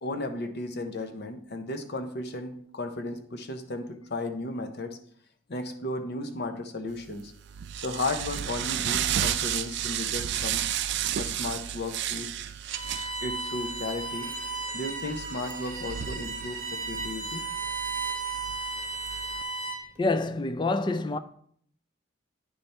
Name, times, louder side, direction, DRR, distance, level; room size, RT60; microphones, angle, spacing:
voice 1, 0.0-5.0 5.5-7.3 7.8-10.8 11.2-12.3 12.6-14.3 14.7-17.4, left 2 dB, 50° left, 0.7 m, -35 dB
sound 1, 7.0-19.4, right 10 dB, 55° right, 0.4 m, -33 dB
Bowed string instrument, 12.7-20.0, right 4 dB, 40° right, 1.0 m, -35 dB
voice 2, 20.0-21.2, left 2 dB, 20° left, 0.3 m, -27 dB
9.3 x 3.3 x 4.2 m
head